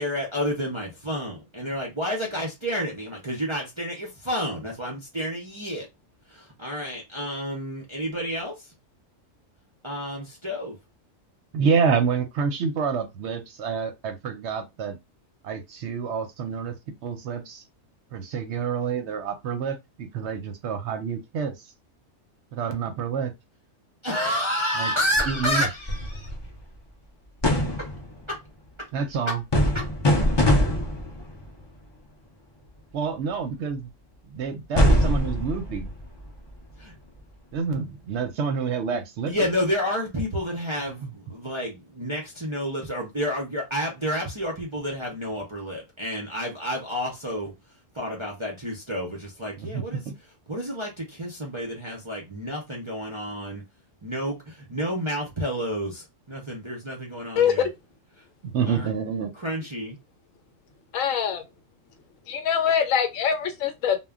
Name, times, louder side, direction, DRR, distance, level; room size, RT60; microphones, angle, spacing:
voice 1, 0.0-5.9 6.3-8.7 9.8-10.8 24.0-26.3 27.8-27.9 28.3-28.4 28.8-28.9 29.3-29.4 29.7-29.9 36.8-36.9 39.3-47.5 47.9-50.0 50.5-53.6 54.0-57.7 58.7-58.9 59.4-60.0, equal, 40° right, 0.4 m, -30 dB
voice 2, 11.5-15.0 15.4-16.7 17.0-17.6 18.1-21.5 22.5-23.3 24.8-24.9 25.3-25.7 28.9-29.4 32.9-33.9 34.3-35.9 37.5-39.5 40.8-41.1 49.6-50.1 58.4-59.3, right 6 dB, 65° right, 0.8 m, -28 dB
sound 1, 25.2-26.6 27.4-28.2 29.5-31.4 34.8-36.4, equal, 40° left, 0.3 m, -23 dB
voice 3, 57.4-57.7 60.9-61.4 62.3-64.0, left 8 dB, 80° left, 1.0 m, -23 dB
2.2 x 2.2 x 3.5 m
omnidirectional pair, 1.4 m